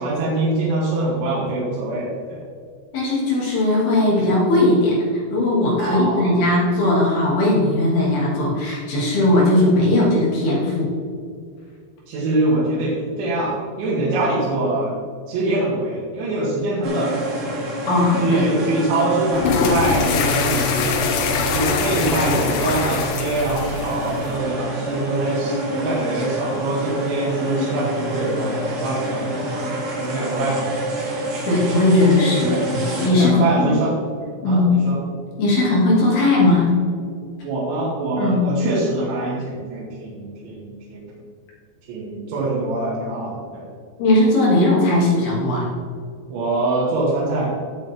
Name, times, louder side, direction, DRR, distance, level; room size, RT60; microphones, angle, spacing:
voice 1, 0.0-2.4 5.8-6.4 12.1-14.9 15.3-17.5 18.2-20.9 21.5-29.6 30.0-30.7 32.4-32.7 33.1-33.9 34.5-35.0 37.4-41.0 41.9-43.7 46.3-47.5, right 2 dB, 80° right, -7 dB, 4.5 m, -24 dB
voice 2, 2.9-5.0 5.3-10.9 17.9-18.5 31.5-33.3 33.6-33.7 34.4-34.7 35.4-36.7 38.2-38.5 44.0-45.7, left 2 dB, 60° left, -5 dB, 4.5 m, -18 dB
sound 1, 16.8-33.1, right 1 dB, 65° right, 4.7 m, -27 dB
sound 2, 19.3-24.4, left 5 dB, 85° left, 1.9 m, -23 dB
15.5 x 8.0 x 3.7 m, 2.2 s
omnidirectional pair, 5.2 m